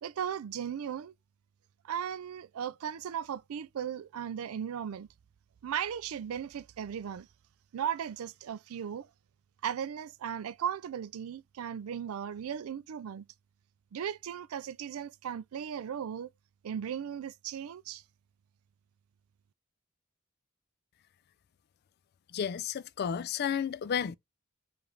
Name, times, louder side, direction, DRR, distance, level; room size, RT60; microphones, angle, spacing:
voice 1, 0.0-1.1 1.8-5.1 5.6-7.3 7.7-9.1 9.6-13.2 13.9-16.3 16.6-18.0, right 8 dB, 90° right, 0.4 m, -37 dB
voice 2, 22.3-24.2, left 7 dB, 50° left, 0.4 m, -32 dB
4.9 x 2.6 x 3.1 m
head